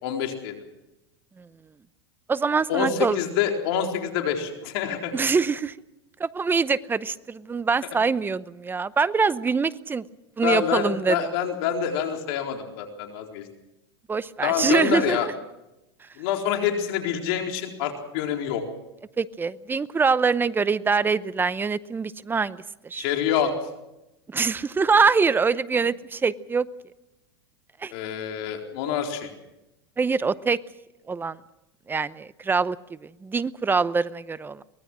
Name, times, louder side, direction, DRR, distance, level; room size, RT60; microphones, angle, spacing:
voice 1, 0.0-0.6 2.7-5.1 10.4-13.4 14.4-15.3 16.2-18.6 22.9-23.5 27.9-29.3, left 8 dB, 65° left, 3 dB, 4.1 m, -26 dB
voice 2, 2.3-3.2 5.1-5.7 6.2-10.0 10.4-11.2 14.1-15.2 19.2-22.6 22.8-23.0 24.3-26.7 27.8-27.9 30.0-30.6 31.1-31.4 31.9-32.8 33.0-34.6, right 5 dB, 15° right, 17 dB, 0.7 m, -24 dB
23.5 x 19.5 x 6.2 m, 0.94 s
hypercardioid pair, 115°, 14 cm